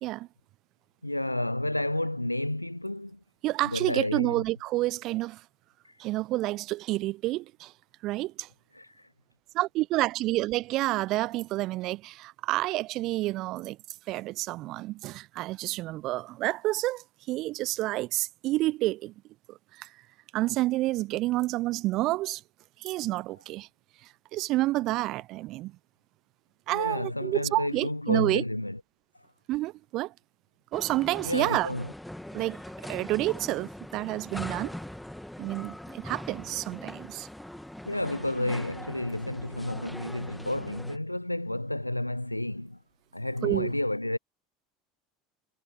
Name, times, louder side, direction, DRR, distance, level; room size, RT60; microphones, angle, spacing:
voice 1, 1.0-3.2 3.6-4.4 5.8-6.0 8.7-9.1 26.7-28.8 31.2-31.9 37.9-42.8 43.1-44.2, left 1 dB, 90° left, 0.5 m, -31 dB
voice 2, 3.4-5.4 6.0-7.7 8.0-8.5 9.6-13.8 14.1-19.1 19.5-19.9 20.3-22.4 22.8-23.7 24.3-25.7 26.7-28.4 29.5-30.1 30.7-31.7 32.3-32.6 32.9-34.8 35.4-37.3 43.4-43.7, right 18 dB, 50° right, 0.6 m, -29 dB
sound 1, 30.7-41.0, left 1 dB, 5° left, 2.2 m, -42 dB
figure-of-eight pair, 70°, 0 cm